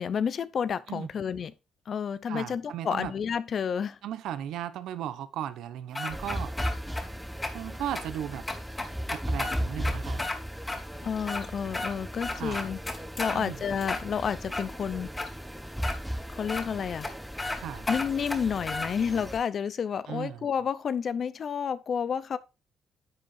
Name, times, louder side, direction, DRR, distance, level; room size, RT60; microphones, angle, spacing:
voice 1, 0.0-1.5 1.9-4.0 11.0-12.8 13.2-15.1 16.3-17.1 17.9-22.4, left 7 dB, 55° left, 0.7 m, -30 dB
voice 2, 2.3-3.1 4.0-6.5 7.5-8.4 9.1-10.2 12.3-12.6 13.3-13.6 17.6-17.9 20.1-20.5, right 11 dB, 80° right, 1.0 m, -36 dB
sound 1, 5.9-7.0 7.4-7.5 7.9-8.0 8.5-10.4 10.7-10.8 11.2-11.9 12.2-13.4 13.8-14.6 15.2-15.3 15.8-16.0 16.5-16.6 17.0-17.1 17.4-17.6 17.9-18.9, left 2 dB, 20° left, 2.3 m, -33 dB
sound 2, 6.1-19.4, equal, ahead, 1.3 m, -37 dB
10.5 x 7.8 x 2.7 m
cardioid pair, 90°, 0 cm